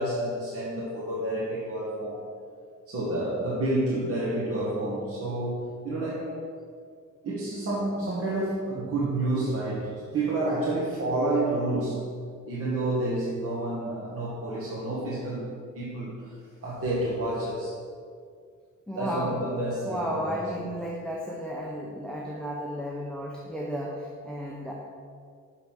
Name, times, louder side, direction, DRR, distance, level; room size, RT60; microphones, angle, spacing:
voice 1, 0.0-2.2 2.9-6.4 7.2-12.0 12.5-16.3 16.6-17.7 19.0-20.4, right 1 dB, 45° right, -7 dB, 1.9 m, -29 dB
voice 2, 18.9-19.4 19.8-24.7, equal, 5° left, -2 dB, 0.9 m, -33 dB
6.6 x 5.9 x 6.4 m, 2.1 s
cardioid pair, 100°, 31 cm